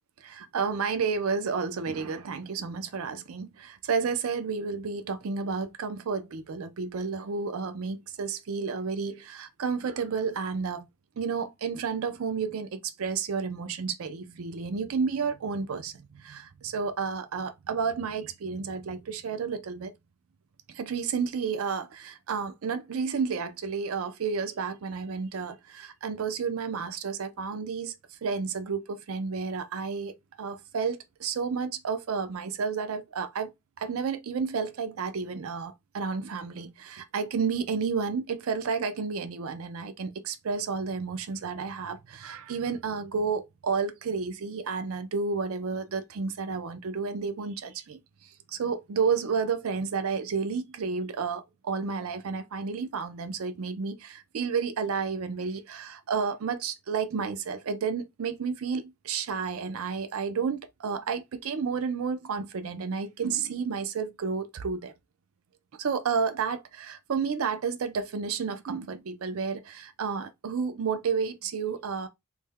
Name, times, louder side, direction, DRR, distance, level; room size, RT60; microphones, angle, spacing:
voice 1, 0.2-10.9 11.2-19.9 20.7-28.0 28.2-48.0 48.5-64.9 65.8-72.1, right 5 dB, 80° right, 0.5 m, -31 dB
3.3 x 2.1 x 3.4 m
head